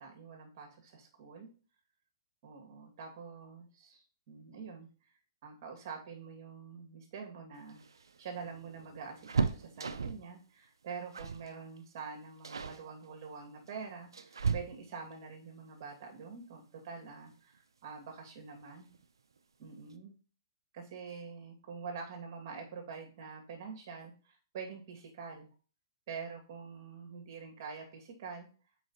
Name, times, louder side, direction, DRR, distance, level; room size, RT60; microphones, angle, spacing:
voice 1, 0.0-1.5 2.4-5.1 5.4-7.8 8.2-18.9 19.6-20.1 20.7-25.5 26.1-28.5, right 5 dB, 50° right, 2 dB, 2.6 m, -46 dB
sound 1, 7.6-10.3 11.1-11.5 11.8-12.0 12.4-12.8 13.6-15.1 16.9-17.0 17.3-17.4 18.6-19.0 19.4-19.5 19.8-20.0, right 5 dB, 85° right, 0.6 m, -36 dB
6.1 x 4.9 x 4.3 m, 0.37 s
hypercardioid pair, 130°, 2 cm